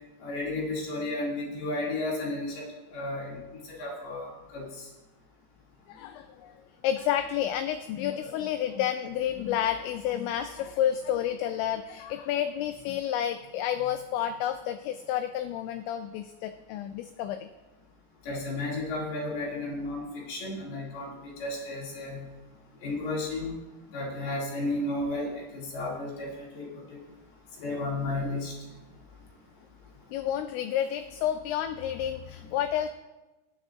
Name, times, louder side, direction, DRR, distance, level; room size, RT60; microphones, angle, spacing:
voice 1, 0.2-3.4 3.7-4.9 18.3-21.1 21.4-22.3 22.8-23.5 23.9-27.0 27.6-28.5, left 2 dB, 60° left, -4 dB, 4.0 m, -33 dB
voice 2, 5.9-6.5 6.8-17.5 30.1-32.9, left 10 dB, 90° left, 9 dB, 2.6 m, -30 dB
18.0 x 10.5 x 2.4 m, 1.1 s
omnidirectional pair, 5.7 m